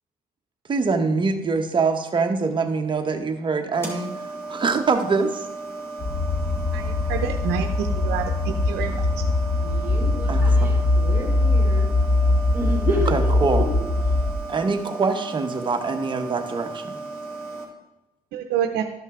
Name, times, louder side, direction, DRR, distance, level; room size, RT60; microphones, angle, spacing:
voice 1, 0.7-4.1 4.5-5.4 10.3-10.9 13.1-13.7 14.5-17.0, right 4 dB, 30° right, 5 dB, 1.0 m, -24 dB
sound 1, 3.7-17.6, right 3 dB, 15° left, 2.4 m, -35 dB
sound 2, 6.0-14.3, left 2 dB, 30° left, 1.2 m, -22 dB
voice 2, 6.7-8.3 8.7-8.9 18.3-18.8, right 9 dB, 75° right, 5 dB, 0.7 m, -27 dB
voice 3, 8.7-11.9 12.5-13.8, right 1 dB, 10° right, -1 dB, 2.9 m, -31 dB
12.5 x 5.4 x 3.7 m, 1.0 s
cardioid pair, 110°, 17 cm